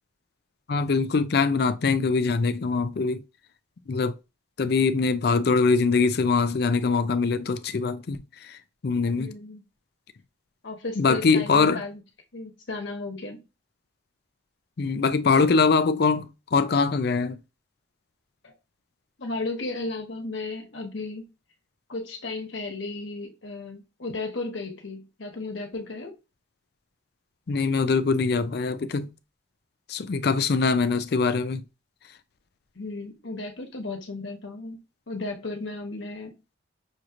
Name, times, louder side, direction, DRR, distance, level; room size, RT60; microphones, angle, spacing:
voice 1, 0.7-3.2 3.9-4.1 4.6-8.6 8.8-9.3 11.0-11.8 14.8-17.4 27.5-29.1 29.9-31.6, left 4 dB, 50° left, 0.4 m, -23 dB
voice 2, 9.1-9.6 10.6-12.0 12.3-13.4 18.4-18.5 19.2-21.3 21.9-26.1 32.7-34.8 35.1-36.3, left 3 dB, 70° left, 1.2 m, -34 dB
6.2 x 2.9 x 2.5 m
head